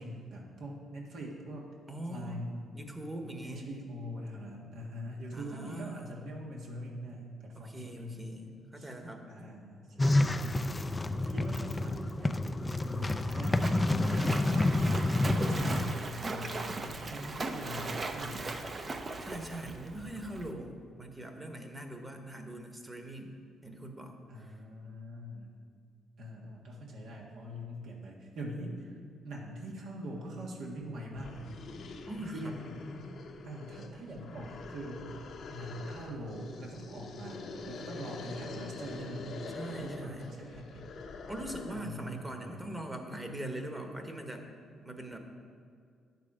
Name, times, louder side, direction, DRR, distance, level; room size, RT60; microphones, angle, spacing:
voice 1, 0.0-1.7 2.1-2.6 3.4-8.2 8.8-8.9 9.3-10.8 11.3-12.5 13.0-14.7 15.4-18.5 24.3-25.5 26.2-29.0 29.2-31.4 32.2-32.6 33.4-35.2 35.5-39.3 39.7-40.9 41.7-42.8, equal, 70° right, -2 dB, 1.6 m, -42 dB
voice 2, 1.9-2.4 2.7-3.7 5.3-6.1 7.6-9.6 9.9-10.3 19.2-23.3 23.6-24.2 32.1-32.5 39.5-40.3 41.3-44.4 44.8-45.2, right 1 dB, 15° right, 4 dB, 1.2 m, -42 dB
sound 1, 10.0-15.9, left 2 dB, 15° left, 0.4 m, -29 dB
Splash splatter, 12.6-20.5, right 3 dB, 35° right, 0.8 m, -39 dB
sound 2, 30.7-30.8 31.1-41.9, left 3 dB, 60° left, 0.9 m, -45 dB
10.5 x 6.8 x 5.0 m, 2.2 s
cardioid pair, 90°, 0 cm